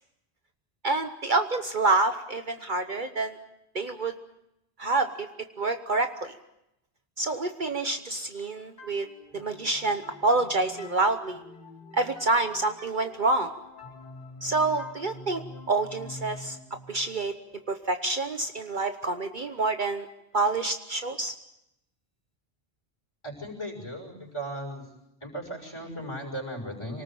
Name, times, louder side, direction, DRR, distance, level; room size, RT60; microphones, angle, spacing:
voice 1, 0.8-3.4 3.7-4.1 4.8-5.3 5.6-6.3 7.2-9.1 9.3-11.4 11.9-13.5 14.4-15.4 15.7-16.6 16.9-17.3 17.7-20.1 20.3-21.3, right 3 dB, 50° right, 7 dB, 1.2 m, -27 dB
sound 1, 8.8-18.3, left 2 dB, 45° left, 4.3 m, -47 dB
voice 2, 23.2-24.9 25.2-27.0, right 1 dB, 25° left, 1 dB, 6.2 m, -37 dB
27.0 x 19.0 x 7.6 m, 0.86 s
omnidirectional pair, 1.1 m